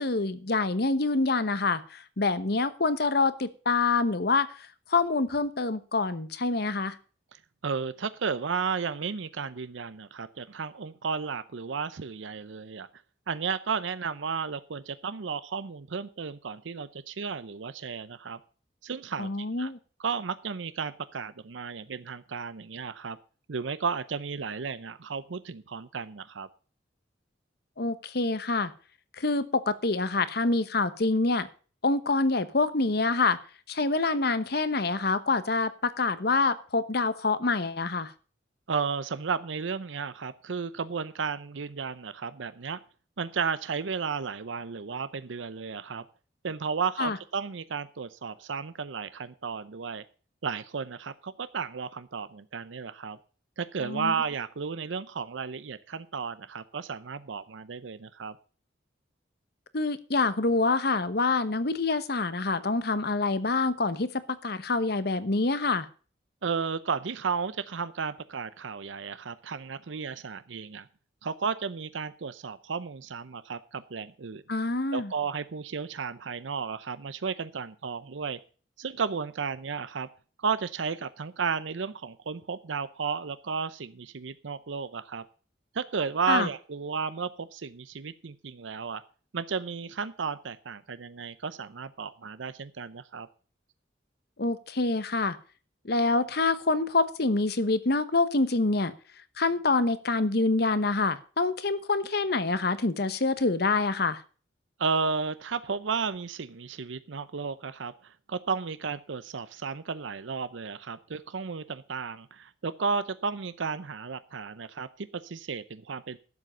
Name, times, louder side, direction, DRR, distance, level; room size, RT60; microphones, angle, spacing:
voice 1, 0.0-4.5 4.9-7.0 19.2-19.8 27.8-28.7 29.2-31.5 31.8-33.4 33.7-38.1 47.0-47.2 53.8-54.1 59.7-65.9 74.5-75.1 86.3-86.5 94.4-95.4 95.8-98.9 99.4-104.2, left 3 dB, 60° left, 14 dB, 1.0 m, -26 dB
voice 2, 7.3-12.9 13.3-18.4 18.8-19.7 20.0-23.2 23.5-26.5 38.7-42.8 43.2-46.0 46.4-50.0 50.4-53.2 53.6-58.4 66.4-70.9 71.2-74.4 74.9-78.4 78.8-80.1 80.4-85.2 85.7-89.0 89.3-93.3 104.8-116.2, right 5 dB, 90° right, 14 dB, 0.6 m, -33 dB
12.0 x 7.6 x 6.7 m, 0.39 s
head